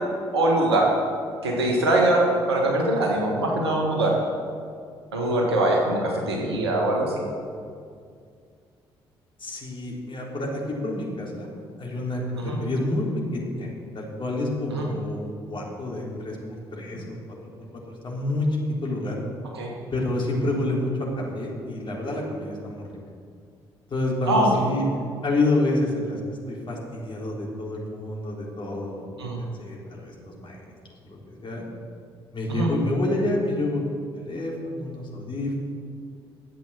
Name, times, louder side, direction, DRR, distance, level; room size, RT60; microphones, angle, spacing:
voice 1, 0.3-0.9 1.4-4.2 5.1-7.3 12.4-12.6 14.7-14.9 19.5-19.7 24.3-24.5 29.2-29.4 32.5-32.7, right 1 dB, 85° right, 0 dB, 1.6 m, -22 dB
voice 2, 6.1-6.8 9.4-11.5 11.8-12.2 12.6-13.7 13.9-17.2 18.0-19.2 19.9-22.8 23.9-30.6 31.0-31.2 31.4-31.6 32.3-35.6, left 2 dB, 40° left, -3 dB, 3.9 m, -28 dB
12.0 x 8.1 x 7.4 m, 2.2 s
figure-of-eight pair, 45°, 13 cm